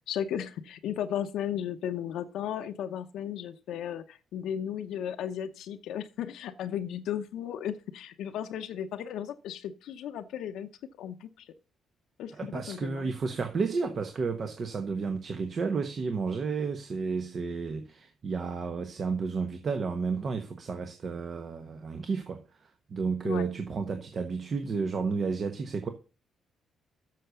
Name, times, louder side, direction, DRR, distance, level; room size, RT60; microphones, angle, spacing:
voice 1, 0.1-10.7 11.0-11.5 12.2-13.1 23.2-23.4, left 9 dB, 80° left, 0.7 m, -35 dB
voice 2, 12.3-25.9, right 4 dB, 45° right, 1.1 m, -32 dB
7.7 x 6.5 x 6.9 m
cardioid pair, 90°, 0 cm